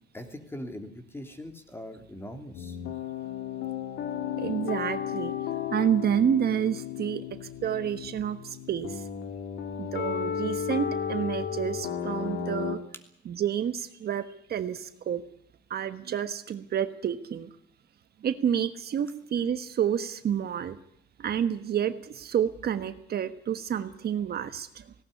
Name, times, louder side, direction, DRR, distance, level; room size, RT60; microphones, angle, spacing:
voice 1, 0.1-2.8, left 1 dB, 10° left, 6 dB, 3.0 m, -41 dB
sound 1, 2.5-12.8, left 8 dB, 80° left, 2.7 m, -34 dB
voice 2, 4.4-5.3 5.7-9.0 9.8-12.8 13.2-15.2 15.7-17.5 18.2-20.8 21.2-24.9, right 9 dB, 50° right, 10 dB, 1.4 m, -29 dB
18.5 x 18.0 x 9.7 m, 0.70 s
cardioid pair, 140°, 20 cm